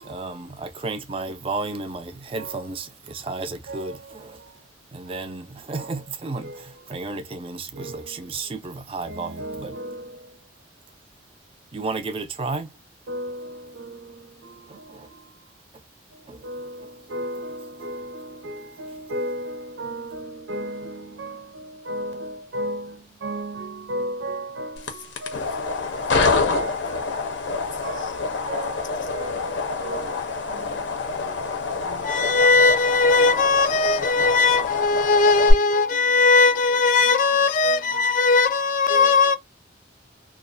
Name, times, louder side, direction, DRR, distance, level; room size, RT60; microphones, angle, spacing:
voice 1, 0.0-4.4 4.9-9.7 11.7-12.7 14.7-15.1 16.3-16.5, right 3 dB, 30° right, 0.4 m, -33 dB
voice 2, 7.8-8.1 9.1-10.0 13.1-14.0 16.4-22.9 23.2-24.8 25.2-25.8 26.5-27.0 27.5-28.9 29.1-30.1 30.5-30.7 31.8-32.0 33.2-33.4 33.8-34.4 35.4-35.9 36.4-36.5 37.0-38.2 38.9-39.2, right 1 dB, 85° right, 0.5 m, -34 dB
sound 1, 24.8-35.5, left 4 dB, 80° left, 0.6 m, -26 dB
voice 3, 32.0-39.4, left 4 dB, 45° left, 0.3 m, -19 dB
2.3 x 2.1 x 2.5 m
head